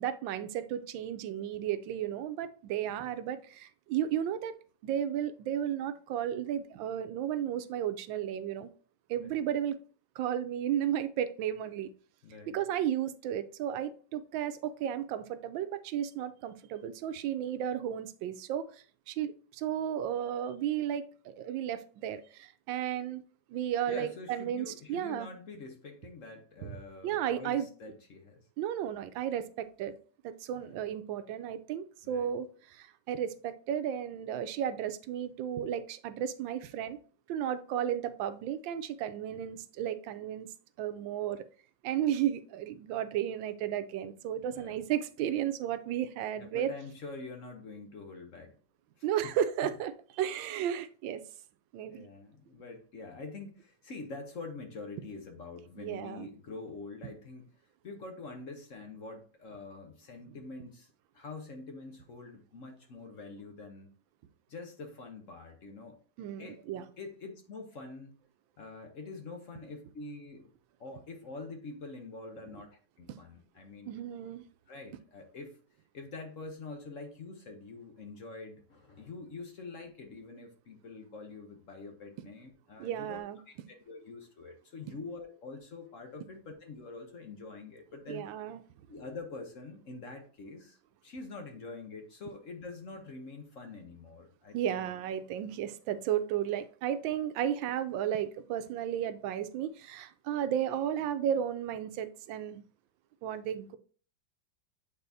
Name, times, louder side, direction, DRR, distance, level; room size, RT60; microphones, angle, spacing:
voice 1, 0.0-4.5 4.8-8.7 9.1-9.8 10.2-11.9 12.5-23.2 23.5-25.3 27.0-27.7 28.6-30.0 30.2-37.0 37.3-40.5 40.8-41.4 41.8-46.7 49.0-51.2 51.7-52.0 55.8-56.3 66.2-66.8 73.9-74.4 82.8-83.4 88.1-88.6 94.5-102.6 103.2-103.8, right 10 dB, 85° right, 1.3 m, -33 dB
voice 2, 12.2-12.6 23.9-28.5 30.5-30.8 32.0-32.3 39.3-39.4 44.5-44.8 46.4-48.6 49.0-49.3 49.6-49.7 51.9-57.5 57.8-63.9 64.5-66.0 66.4-68.2 68.6-70.5 70.8-73.9 74.7-75.6 75.9-88.3 88.9-94.9, left 3 dB, 55° left, 1.0 m, -45 dB
8.2 x 4.2 x 2.7 m
omnidirectional pair, 2.0 m